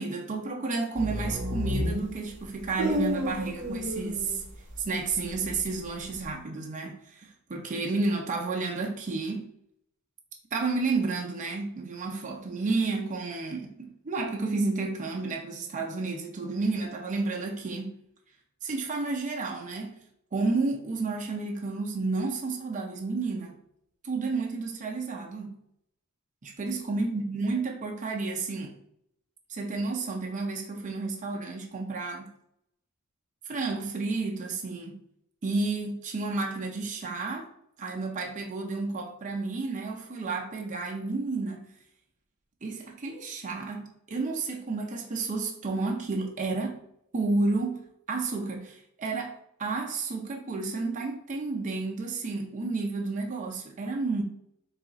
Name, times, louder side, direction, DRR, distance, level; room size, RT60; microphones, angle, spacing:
voice 1, 0.0-4.4 4.8-9.5 10.5-18.0 18.6-20.0 20.3-23.6 24.0-25.6 26.4-28.7 29.5-32.3 33.5-35.0 35.4-37.5 37.8-41.7 42.6-46.8 47.1-54.2, right 3 dB, 35° right, 0 dB, 0.5 m, -31 dB
sound 1, 1.0-4.8 5.1-6.3, equal, 60° right, 0.8 m, -31 dB
3.4 x 2.4 x 3.9 m, 0.73 s
head